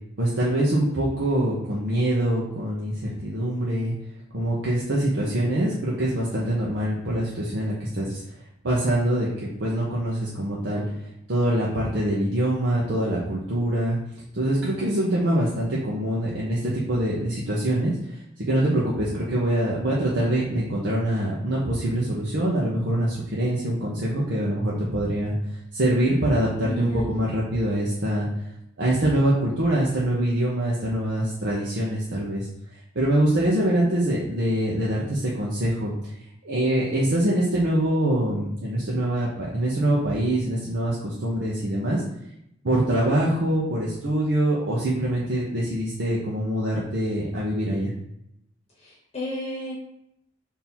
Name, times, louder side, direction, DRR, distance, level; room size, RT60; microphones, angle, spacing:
voice 1, 0.2-3.9 4.3-8.2 8.6-10.8 11.3-14.0 14.3-25.3 25.7-28.3 28.8-32.5 32.9-36.1 36.4-42.0 42.6-47.9, right 1 dB, 70° right, -5 dB, 0.8 m, -24 dB
voice 2, 26.6-27.1 48.8-49.7, left 1 dB, 35° left, -6 dB, 1.1 m, -32 dB
3.6 x 2.8 x 4.4 m, 0.79 s
head